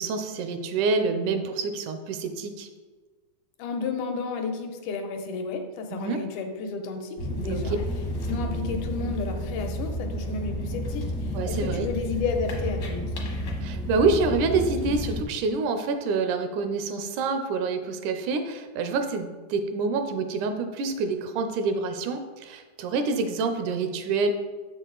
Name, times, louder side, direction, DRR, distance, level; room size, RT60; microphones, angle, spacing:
voice 1, 0.0-2.7 5.9-6.2 7.5-7.8 11.3-11.9 13.6-24.3, right 4 dB, 80° right, 7 dB, 2.1 m, -27 dB
voice 2, 3.6-7.8 8.2-13.2, left 4 dB, 90° left, 4 dB, 2.3 m, -32 dB
sound 1, 7.2-15.2, equal, 60° left, 0.9 m, -31 dB
7.0 x 6.4 x 3.9 m, 1.4 s
omnidirectional pair, 3.5 m